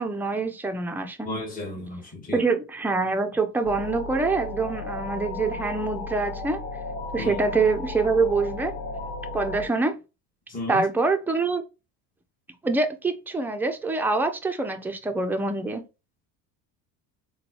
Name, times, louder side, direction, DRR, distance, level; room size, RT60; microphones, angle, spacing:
voice 1, 0.0-1.3 2.3-6.6 7.1-8.7 9.3-10.0 10.7-11.6 12.6-15.8, right 3 dB, 5° right, 0.4 m, -25 dB
voice 2, 1.2-2.4 7.2-7.3 10.5-10.8, left 2 dB, 20° left, 1.4 m, -33 dB
sound 1, 3.6-9.7, left 2 dB, 90° left, 1.0 m, -34 dB
3.9 x 2.3 x 2.7 m
supercardioid pair, 95°, 42 cm